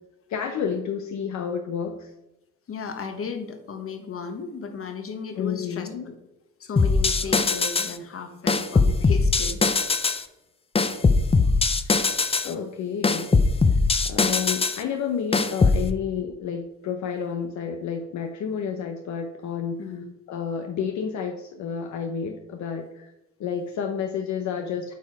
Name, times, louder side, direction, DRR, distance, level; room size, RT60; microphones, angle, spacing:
voice 1, 0.3-2.1 5.4-6.1 12.4-13.3 14.0-19.8 20.3-23.1 23.4-24.9, left 7 dB, 70° left, 4 dB, 0.8 m, -30 dB
voice 2, 2.7-6.1 6.6-9.6 11.1-11.4 19.8-20.0, left 5 dB, 45° left, 7 dB, 1.3 m, -35 dB
sound 1, 6.8-7.9 8.5-10.2 10.8-12.5 13.0-14.8 15.3-15.8, left 4 dB, 20° left, 0.6 m, -21 dB
8.2 x 4.6 x 4.7 m, 0.93 s
cardioid pair, 90°, 30 cm